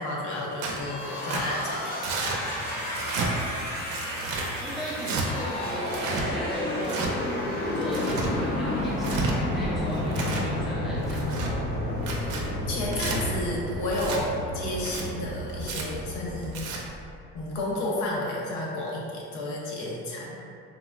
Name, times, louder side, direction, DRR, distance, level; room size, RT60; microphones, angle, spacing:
voice 1, 0.0-2.0 12.6-16.7 17.3-20.4, left 1 dB, 70° left, -4 dB, 0.8 m, -31 dB
Tearing, 0.6-0.8 1.3-1.4 2.0-2.4 2.9-3.3 3.9-4.5 5.0-5.3 5.9-6.2 6.8-7.1 7.8-8.3 8.9-9.3 9.9-10.5 11.0-11.5 12.0-12.4 12.9-13.2 13.9-14.2 14.8-15.0 15.6-15.8 16.4-16.8, right 4 dB, 75° right, 0.5 m, -32 dB
sound 1, 0.8-17.4, left 1 dB, 50° left, 1.0 m, -31 dB
sound 2, 2.3-11.0, right 1 dB, 25° left, 0.8 m, -39 dB
voice 2, 4.6-7.3 7.7-11.6, equal, ahead, -8 dB, 0.3 m, -36 dB
3.6 x 2.1 x 2.4 m, 2.4 s
cardioid pair, 155°, 31 cm